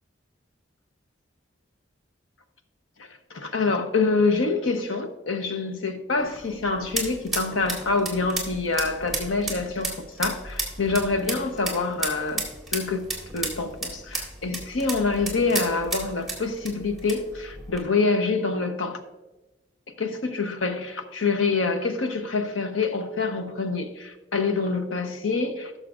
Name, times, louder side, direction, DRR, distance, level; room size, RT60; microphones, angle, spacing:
voice 1, 3.0-12.4 12.7-13.0 13.3-19.0 20.0-25.8, left 4 dB, 90° left, 1.0 m, -26 dB
sound 1, 6.2-17.8, right 2 dB, ahead, 2.0 m, -34 dB
17.5 x 6.6 x 2.5 m
head